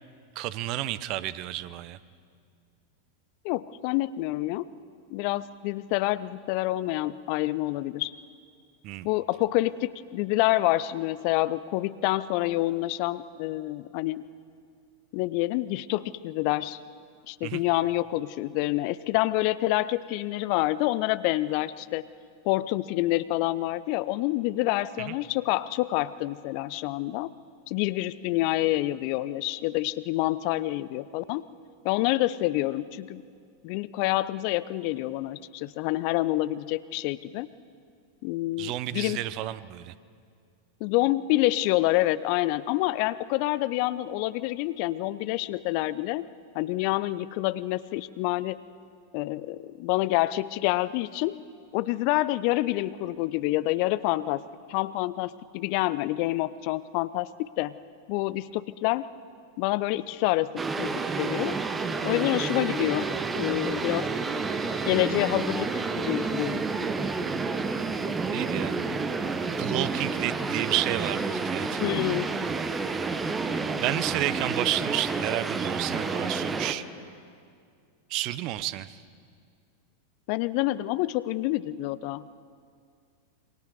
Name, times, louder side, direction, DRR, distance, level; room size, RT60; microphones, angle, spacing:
voice 1, 0.4-2.0 8.8-9.1 17.4-17.6 25.0-25.1 38.6-39.9 68.3-68.7 69.6-72.1 73.8-76.8 78.1-79.0, right 15 dB, 40° right, 17 dB, 0.8 m, -31 dB
voice 2, 3.4-4.7 5.1-8.1 9.0-14.2 15.1-16.8 17.3-22.0 22.4-27.3 27.7-31.4 31.8-33.2 33.6-37.5 38.2-39.2 40.8-46.3 46.5-48.6 49.1-51.4 51.7-54.4 54.7-57.7 58.1-59.1 59.6-61.6 62.0-64.1 64.8-66.6 71.8-72.3 80.3-82.2, left 17 dB, 45° left, 17 dB, 0.5 m, -27 dB
sound 1, 60.6-76.7, right 4 dB, 15° right, 1.3 m, -30 dB
27.5 x 24.0 x 4.9 m, 2.2 s
figure-of-eight pair, 90°, 0 cm